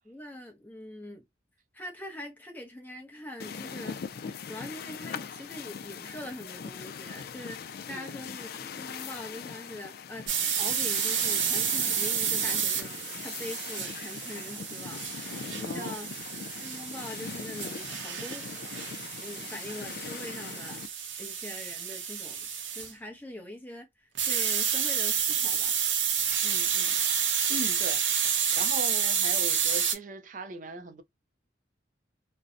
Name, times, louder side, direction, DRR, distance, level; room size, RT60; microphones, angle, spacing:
voice 1, 0.0-1.2 1.7-4.0 4.5-16.1 16.6-18.5 19.2-20.8 21.2-22.5 22.7-25.8, left 1 dB, 10° left, 0.7 m, -43 dB
sound 1, 3.4-20.9, left 6 dB, 55° left, 0.3 m, -41 dB
sound 2, 10.3-22.9 24.1-29.9, right 7 dB, 85° right, 0.7 m, -30 dB
voice 2, 15.6-16.1 26.4-27.0 27.5-31.0, right 2 dB, 45° right, 0.4 m, -39 dB
2.6 x 2.1 x 2.3 m
head